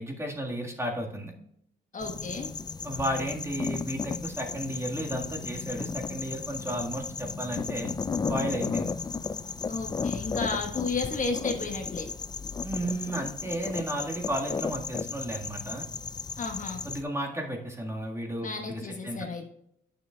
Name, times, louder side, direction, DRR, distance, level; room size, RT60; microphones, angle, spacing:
voice 1, 0.0-1.3 2.8-7.9 8.3-8.9 10.5-10.6 12.6-15.8 16.8-19.3, right 1 dB, 15° right, 0 dB, 1.6 m, -33 dB
voice 2, 1.9-2.5 9.7-12.1 16.4-16.8 18.4-19.5, left 4 dB, 40° left, 3 dB, 1.2 m, -33 dB
sound 1, 2.0-17.0, left 5 dB, 20° left, 0.3 m, -34 dB
9.1 x 6.6 x 2.3 m, 0.74 s
cardioid pair, 90°, 20 cm